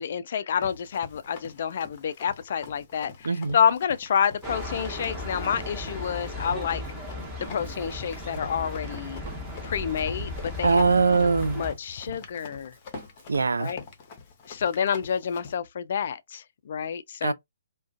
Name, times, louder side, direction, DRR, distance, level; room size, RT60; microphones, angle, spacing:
voice 1, 0.0-6.8 7.4-9.2 9.6-10.8 11.6-12.7 13.6-13.8 14.5-17.3, left 7 dB, 50° left, 0.3 m, -28 dB
Run, 0.6-15.6, left 5 dB, 35° left, 0.7 m, -46 dB
voice 2, 3.2-3.6 10.6-11.6 13.3-13.7 17.2-17.3, right 4 dB, 75° right, 0.3 m, -22 dB
sound 1, 4.4-11.7, left 1 dB, 5° right, 0.9 m, -36 dB
Drum kit, 6.5-13.8, right 4 dB, 50° right, 0.9 m, -47 dB
2.4 x 2.2 x 2.4 m
figure-of-eight pair, 135°, 0 cm